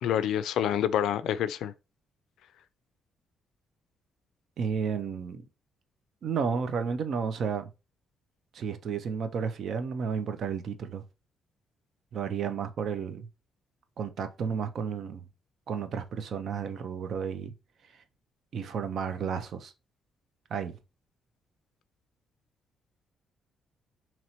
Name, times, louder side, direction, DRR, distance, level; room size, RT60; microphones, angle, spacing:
voice 1, 0.0-1.7, left 10 dB, 75° left, 0.3 m, -27 dB
voice 2, 4.6-5.5 6.2-7.7 8.5-11.0 12.1-13.3 14.0-15.3 15.7-17.5 18.5-19.7 20.5-20.8, right 6 dB, 50° right, 0.5 m, -32 dB
2.9 x 2.9 x 4.2 m
cardioid pair, 160°, 0 cm